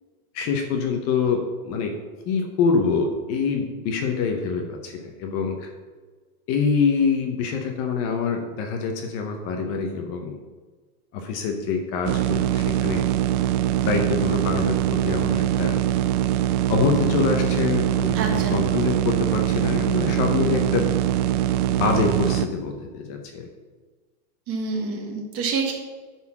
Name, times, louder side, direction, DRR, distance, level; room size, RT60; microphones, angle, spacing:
voice 1, 0.3-1.9 2.3-5.7 6.5-10.4 11.1-13.0 13.8-15.8 16.7-20.9 21.7-23.5, left 5 dB, 30° left, 4 dB, 0.8 m, -25 dB
sound 1, 12.0-22.5, right 12 dB, 75° right, 0.6 m, -23 dB
voice 2, 18.1-18.6 24.5-25.7, right 4 dB, 30° right, 1 dB, 1.6 m, -27 dB
9.6 x 4.2 x 5.8 m, 1.4 s
supercardioid pair, 155°, 45 cm